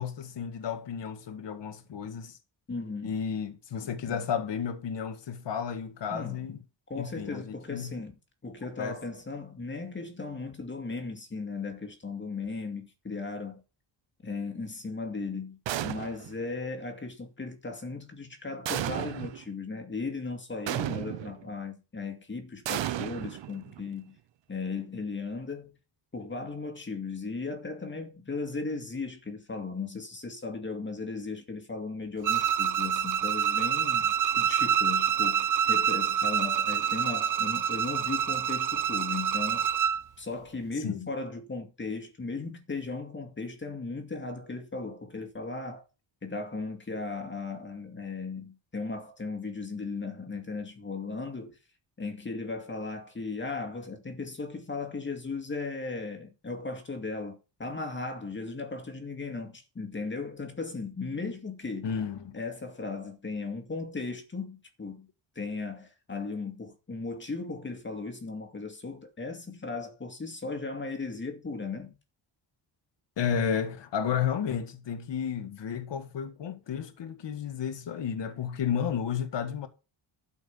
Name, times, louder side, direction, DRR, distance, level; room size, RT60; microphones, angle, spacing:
voice 1, 0.0-2.4 3.0-6.6 6.9-7.9 8.8-9.0 40.8-41.1 61.8-62.4 73.2-79.7, left 7 dB, 65° left, 1.7 m, -32 dB
voice 2, 2.7-3.2 6.1-6.4 6.9-8.1 8.4-13.6 14.2-24.2 24.5-25.7 26.1-39.7 40.2-45.9 46.2-51.6 52.0-61.9 62.3-65.1 65.4-72.0, left 3 dB, 25° left, 2.2 m, -37 dB
sound 1, 15.7-16.4 18.7-19.4 20.7-21.4 22.7-23.9, right 12 dB, 70° right, 0.9 m, -33 dB
Bowed string instrument, 32.2-40.0, right 8 dB, 40° right, 0.6 m, -27 dB
12.5 x 5.7 x 7.1 m
wide cardioid pair, 145°, 47 cm